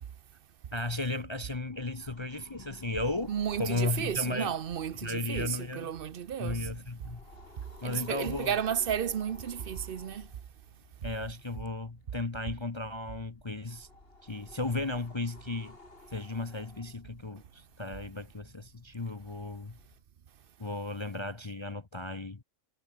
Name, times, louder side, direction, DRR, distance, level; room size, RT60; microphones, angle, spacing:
voice 1, 0.7-4.5 5.0-5.9 6.4-7.2 7.8-8.5 11.0-13.9 14.2-15.8 16.1-19.8 20.6-22.4, left 2 dB, 25° left, 0.8 m, -35 dB
sound 1, 1.3-20.0, left 2 dB, 45° left, 3.6 m, -55 dB
voice 2, 3.3-6.7 7.8-10.3, right 8 dB, 50° right, 0.8 m, -33 dB
omnidirectional pair, 1.4 m